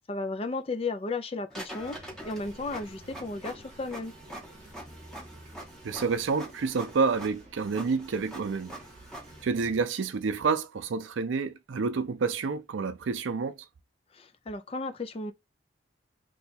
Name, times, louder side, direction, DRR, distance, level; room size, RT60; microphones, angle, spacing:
voice 1, 0.0-4.1 14.1-15.3, left 3 dB, 30° left, 0.4 m, -34 dB
Printer, 1.5-9.4, right 1 dB, ahead, 0.8 m, -45 dB
sound 1, 1.8-9.8, right 1 dB, 40° right, 0.7 m, -52 dB
voice 2, 5.8-8.7 9.4-13.6, right 4 dB, 85° right, 0.5 m, -29 dB
2.8 x 2.3 x 4.1 m
head